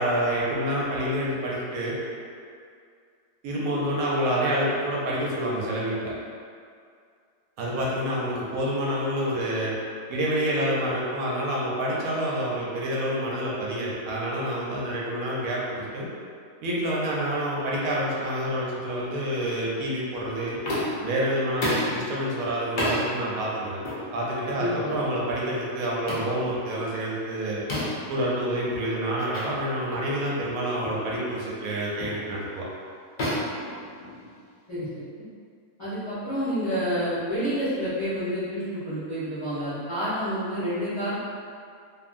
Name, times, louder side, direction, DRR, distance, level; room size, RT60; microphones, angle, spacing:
voice 1, 0.0-2.0 3.4-6.1 7.6-9.7 10.1-16.1 16.6-20.6 21.0-23.8 24.1-27.6 28.1-32.7, right 1 dB, 70° right, -5 dB, 0.9 m, -28 dB
sound 1, 20.6-21.1 21.6-22.0 22.8-23.0 23.8-24.0 24.9-25.1 26.1-26.3 27.7-28.1 29.3-29.5 29.9-30.1 30.8-31.1 32.0-32.2 33.2-34.4, left 1 dB, 85° left, 0.4 m, -29 dB
voice 2, 24.5-25.0 34.7-34.9 35.8-41.2, equal, 30° left, -15 dB, 0.6 m, -29 dB
2.6 x 2.6 x 2.5 m, 2.3 s
omnidirectional pair, 1.7 m